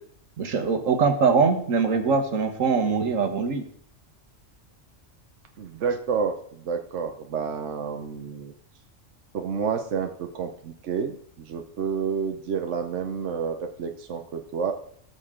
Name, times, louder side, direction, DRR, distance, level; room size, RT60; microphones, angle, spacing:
voice 1, 0.4-3.6, right 5 dB, 85° right, 6 dB, 1.7 m, -22 dB
voice 2, 5.6-6.3 6.6-8.5 9.3-14.7, right 6 dB, 70° right, 5 dB, 1.1 m, -29 dB
17.5 x 6.6 x 3.7 m, 0.63 s
omnidirectional pair, 1.3 m